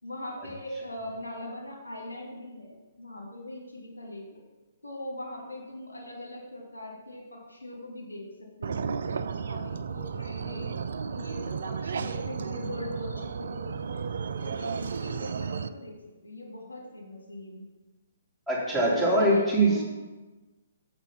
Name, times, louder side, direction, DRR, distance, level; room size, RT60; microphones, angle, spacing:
voice 1, 0.0-4.4 4.8-14.0 14.4-15.9 16.2-17.6 18.9-19.8, left 1 dB, 80° left, -1 dB, 3.0 m, -40 dB
sound 1, 8.6-15.7, right 6 dB, 65° right, 0.5 m, -33 dB
voice 2, 18.5-19.7, right 1 dB, ahead, -9 dB, 3.3 m, -22 dB
7.8 x 6.8 x 5.8 m, 1.2 s
figure-of-eight pair, 130°, 0 cm